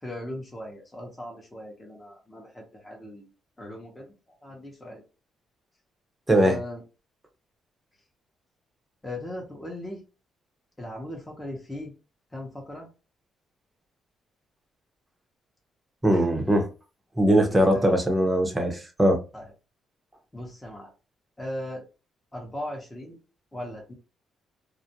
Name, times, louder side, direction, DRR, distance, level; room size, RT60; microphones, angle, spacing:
voice 1, 0.0-3.3 3.6-5.0 6.3-6.8 9.0-10.0 10.8-11.9 12.3-12.9 16.1-16.3 17.3-18.0 19.3-19.5 20.3-20.9 21.4-21.9 22.3-23.2 23.5-23.9, left 1 dB, 15° left, 0.9 m, -38 dB
voice 2, 16.0-16.7 17.2-19.2, right 1 dB, 15° right, 0.7 m, -21 dB
2.4 x 2.1 x 2.7 m
cardioid pair, 90°, 0 cm